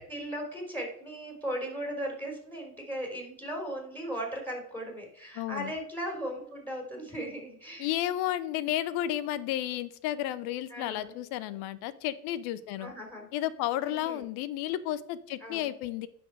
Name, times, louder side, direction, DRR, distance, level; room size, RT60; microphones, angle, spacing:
voice 1, 0.0-7.9 10.7-11.2 12.8-13.3 13.9-14.2 15.4-15.7, equal, 5° left, 1 dB, 4.1 m, -37 dB
voice 2, 5.3-5.7 7.8-12.9 13.3-16.1, left 13 dB, 55° left, 16 dB, 0.9 m, -32 dB
8.7 x 6.3 x 4.7 m, 0.67 s
hypercardioid pair, 75°, 46 cm